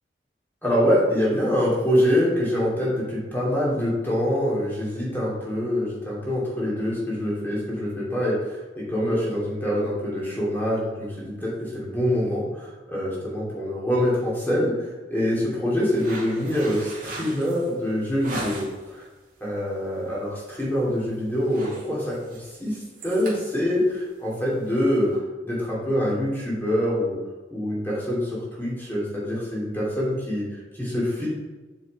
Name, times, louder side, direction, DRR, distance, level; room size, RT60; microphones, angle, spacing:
voice 1, 0.6-18.6 18.9-19.0 19.4-25.1 25.4-27.2 27.5-30.5 30.8-31.3, equal, 10° left, -6 dB, 2.6 m, -25 dB
sound 1, 15.9-18.9 19.4-19.7 20.1-20.3 20.6-21.0 21.3-25.2, right 2 dB, 50° right, 2.0 m, -39 dB
7.1 x 6.0 x 4.2 m, 1.2 s
head